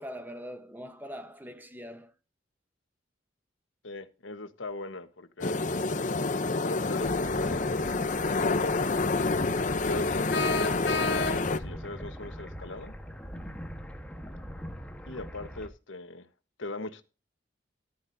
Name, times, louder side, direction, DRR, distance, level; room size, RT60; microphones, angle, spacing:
voice 1, 0.0-2.1, equal, 10° right, 1.0 m, -42 dB
voice 2, 3.8-5.7 6.6-7.8 8.3-8.7 9.9-12.9 15.1-16.3 16.6-17.0, left 2 dB, 90° left, 1.3 m, -39 dB
sound 1, 5.4-11.6, left 3 dB, 40° left, 0.7 m, -28 dB
sound 2, 7.0-15.7, equal, 5° left, 1.3 m, -42 dB
sound 3, 10.3-11.7, left 3 dB, 70° left, 2.2 m, -31 dB
14.5 x 10.5 x 2.7 m
head